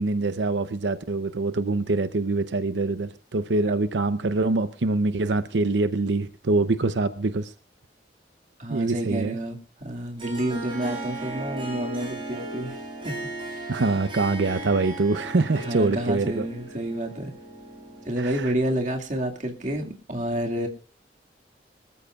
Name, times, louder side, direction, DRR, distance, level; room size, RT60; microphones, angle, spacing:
voice 1, 0.0-7.5 8.7-9.4 13.7-16.5 18.2-18.5, right 3 dB, 90° right, 0.7 m, -24 dB
voice 2, 8.6-13.2 13.5-13.8 15.6-17.3 18.1-20.7, right 1 dB, 45° right, 2.1 m, -29 dB
Harp, 10.2-18.6, right 1 dB, 30° right, 6.6 m, -36 dB
24.5 x 14.0 x 2.4 m
head